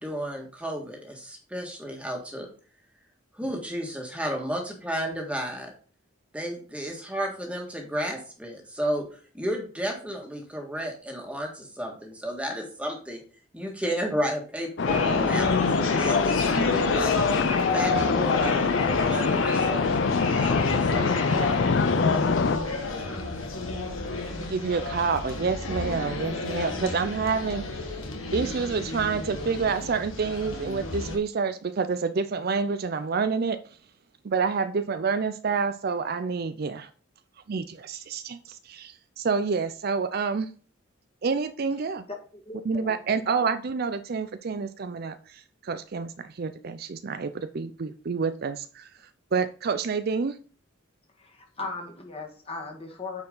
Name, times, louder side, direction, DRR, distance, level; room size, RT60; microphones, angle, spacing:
voice 1, 0.0-2.5 3.3-5.7 6.3-9.1 9.3-13.2 13.5-15.5 16.0-17.2 17.7-19.9 20.3-21.2, equal, 5° right, 1.7 m, -32 dB
sound 1, 14.8-22.6, left 4 dB, 60° left, 0.5 m, -25 dB
sound 2, 14.9-31.2, left 3 dB, 90° left, 1.4 m, -30 dB
voice 2, 24.5-27.9 28.3-33.6 34.2-36.9 37.5-40.5 41.2-42.0 42.7-48.9 49.3-50.4, right 5 dB, 50° right, 0.5 m, -28 dB
voice 3, 42.1-43.0 51.2-53.2, left 3 dB, 30° left, 1.8 m, -38 dB
8.6 x 4.5 x 3.9 m
head